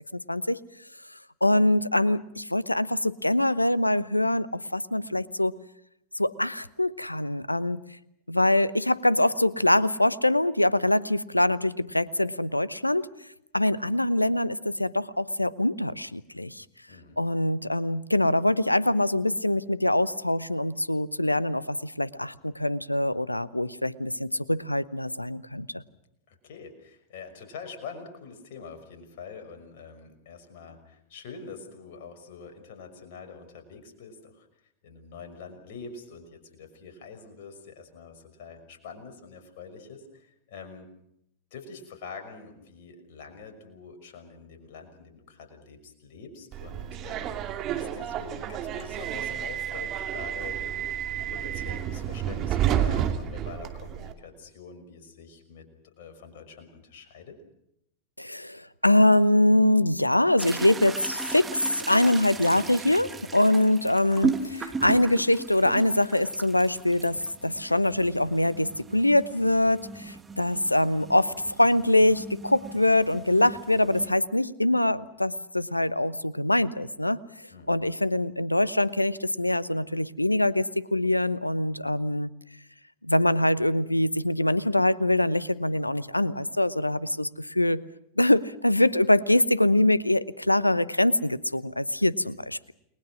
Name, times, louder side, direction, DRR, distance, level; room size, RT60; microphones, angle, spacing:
voice 1, 0.1-0.6 1.4-5.6 6.1-7.8 8.3-13.1 13.5-16.6 17.2-25.8 58.2-71.3 71.6-77.2 77.7-82.3 83.0-87.8 88.2-92.7, left 1 dB, 85° left, 20 dB, 0.9 m, -24 dB
voice 2, 16.9-17.2 26.3-34.5 34.8-40.9 41.5-57.4 77.5-77.7, left 5 dB, 50° left, 5 dB, 6.0 m, -45 dB
Subway metro underground, 46.5-54.1, right 10 dB, 35° right, 2.5 m, -30 dB
sound 1, 60.4-74.1, right 4 dB, 15° right, 2.4 m, -37 dB
29.5 x 21.5 x 6.2 m, 0.77 s
figure-of-eight pair, 90°, 0 cm